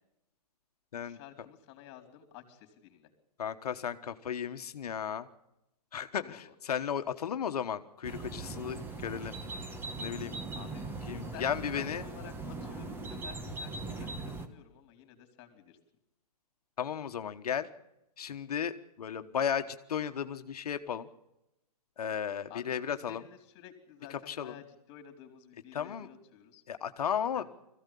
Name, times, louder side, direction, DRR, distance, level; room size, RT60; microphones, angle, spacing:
voice 1, 0.9-3.1 6.1-6.5 10.5-15.8 22.5-26.6 27.3-27.4, left 10 dB, 30° left, 5 dB, 3.6 m, -52 dB
voice 2, 3.4-5.3 5.9-9.4 10.0-10.4 11.1-12.0 16.8-17.7 18.2-21.1 22.0-23.2 24.3-24.5 25.7-26.1 26.7-27.4, left 8 dB, 75° left, 9 dB, 1.3 m, -34 dB
sound 1, 8.0-14.5, right 3 dB, 10° right, 1.4 m, -40 dB
21.0 x 15.5 x 8.5 m, 0.89 s
hypercardioid pair, 145°, 20 cm